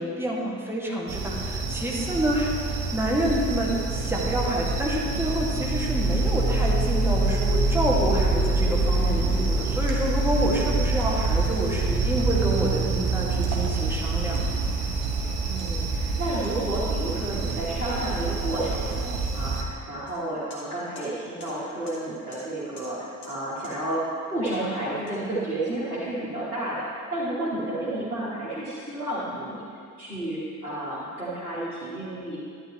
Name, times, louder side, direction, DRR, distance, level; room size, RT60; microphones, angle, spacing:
voice 1, 0.0-2.5 2.9-14.5, right 1 dB, 5° right, -4 dB, 1.9 m, -28 dB
sound 1, 1.1-19.6, right 3 dB, 55° right, 1.2 m, -26 dB
voice 2, 15.4-29.6 30.0-32.4, right 1 dB, 90° right, -10 dB, 1.3 m, -31 dB
sound 2, 20.1-20.2 20.5-20.6 20.9-21.1 21.4-21.5 21.9-22.0 22.3-22.4 22.8-22.9 23.2-23.3 23.6-23.7 24.4-24.6 25.1-26.1, left 2 dB, 75° left, 1.8 m, -47 dB
11.5 x 8.5 x 3.1 m, 2.4 s
figure-of-eight pair, 50°, 44 cm